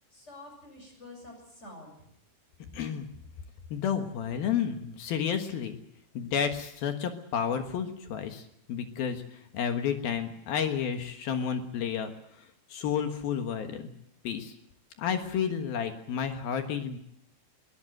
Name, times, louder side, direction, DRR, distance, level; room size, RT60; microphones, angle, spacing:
voice 1, 0.1-2.1, left 2 dB, 15° left, 3 dB, 7.7 m, -48 dB
voice 2, 2.7-3.1 3.7-5.8 6.1-8.4 8.7-9.2 9.5-12.1 12.7-13.9 14.2-14.5 15.0-17.0, left 7 dB, 65° left, 6 dB, 3.1 m, -31 dB
22.5 x 17.5 x 7.8 m, 0.72 s
omnidirectional pair, 5.0 m